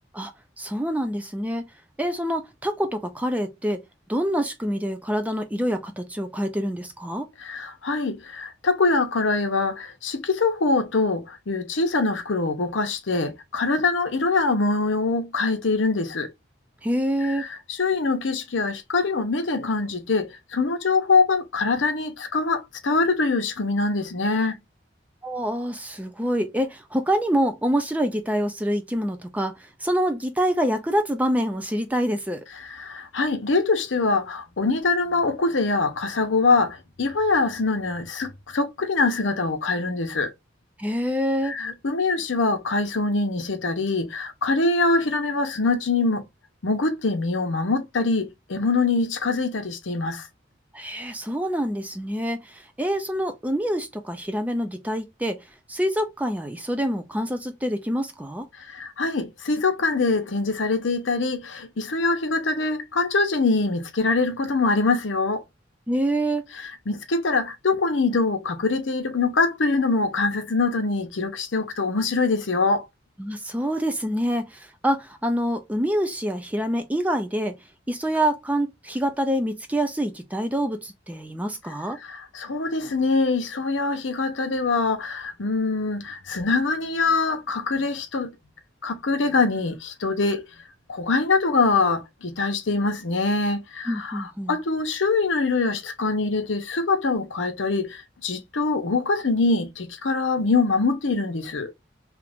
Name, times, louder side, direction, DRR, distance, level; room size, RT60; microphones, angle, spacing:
voice 1, 0.6-1.7 2.0-3.8 4.1-7.3 16.8-17.4 25.2-32.4 40.8-41.5 50.7-55.4 55.7-58.5 65.9-66.5 73.2-77.5 77.9-82.0 93.9-94.6, equal, 10° right, 0.5 m, -26 dB
voice 2, 7.4-16.3 17.2-24.6 32.6-40.3 41.4-46.2 46.6-50.3 58.6-65.4 66.6-72.9 82.0-88.3 88.8-90.4 90.9-101.7, left 3 dB, 80° left, 0.8 m, -24 dB
2.9 x 2.5 x 3.4 m
head